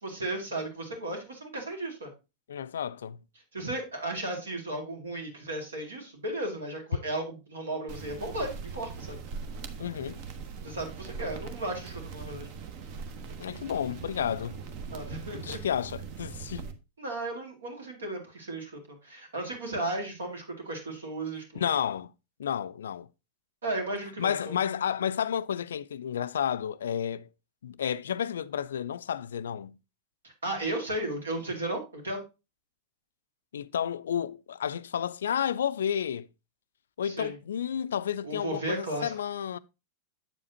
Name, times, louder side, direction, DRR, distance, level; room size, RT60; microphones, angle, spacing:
voice 1, 0.0-2.1 3.5-9.2 10.6-12.5 14.9-15.6 17.0-21.7 23.6-24.6 30.2-32.2 37.0-37.4 38.2-39.1, right 1 dB, 70° right, 2.1 m, -35 dB
voice 2, 2.5-3.2 9.8-10.2 13.4-14.6 15.3-16.6 21.6-22.1 22.4-23.1 24.2-27.3 27.6-29.8 33.5-36.3 37.0-39.6, left 9 dB, 65° left, 0.3 m, -31 dB
sound 1, 7.9-16.7, right 5 dB, 45° right, 0.9 m, -41 dB
7.9 x 7.2 x 2.7 m
figure-of-eight pair, 90°, 0 cm